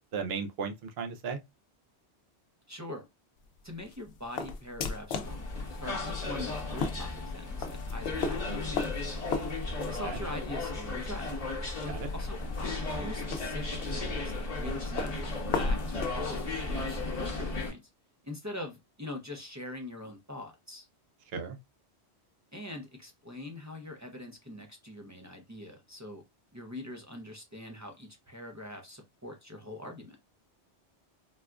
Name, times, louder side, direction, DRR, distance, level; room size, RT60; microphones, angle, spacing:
voice 1, 0.1-1.4 9.9-10.2 11.8-12.1 21.3-21.6, right 5 dB, 70° right, 0.8 m, -36 dB
voice 2, 2.7-3.1 3.6-9.2 9.9-11.3 12.1-12.4 12.9-17.8 18.2-20.9 22.5-26.2 26.5-30.2, left 1 dB, 20° right, 0.5 m, -43 dB
sound 1, 3.4-17.1, left 4 dB, 75° left, 0.8 m, -38 dB
sound 2, 5.2-17.7, left 2 dB, 40° left, 0.9 m, -35 dB
4.1 x 2.3 x 2.3 m
omnidirectional pair, 1.1 m